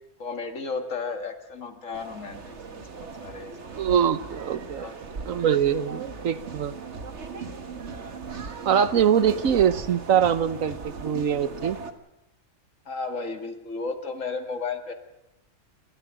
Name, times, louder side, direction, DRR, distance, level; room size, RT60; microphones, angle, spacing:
voice 1, 0.2-3.6 4.8-5.0 12.9-14.9, left 4 dB, 75° left, 6 dB, 2.3 m, -34 dB
sound 1, 1.9-11.9, right 4 dB, 60° right, 1.8 m, -38 dB
voice 2, 3.7-4.9 5.3-6.7 8.6-11.8, right 8 dB, 85° right, 13 dB, 1.4 m, -23 dB
28.5 x 13.5 x 9.2 m, 0.92 s
omnidirectional pair, 1.4 m